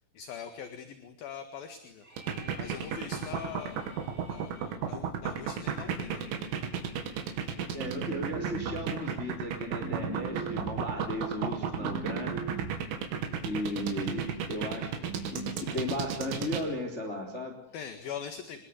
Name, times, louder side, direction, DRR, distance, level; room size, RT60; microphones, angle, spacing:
voice 1, 0.1-2.0 2.6-4.0 4.3-4.5 4.9-6.4 17.7-18.6, left 8 dB, 60° left, 8 dB, 3.1 m, -42 dB
sound 1, 2.0-4.8, right 1 dB, 15° right, 6.0 m, -51 dB
sound 2, 2.2-16.7, right 7 dB, 85° right, 5.4 m, -33 dB
voice 2, 7.7-12.6 13.4-14.9 15.3-17.6, left 1 dB, 15° left, 4 dB, 3.4 m, -36 dB
sound 3, 7.8-9.0 9.8-10.9 11.8-12.9 13.8-14.4 15.1-15.7, right 5 dB, 55° right, 4.7 m, -39 dB
26.5 x 22.0 x 9.6 m, 0.66 s
omnidirectional pair, 5.6 m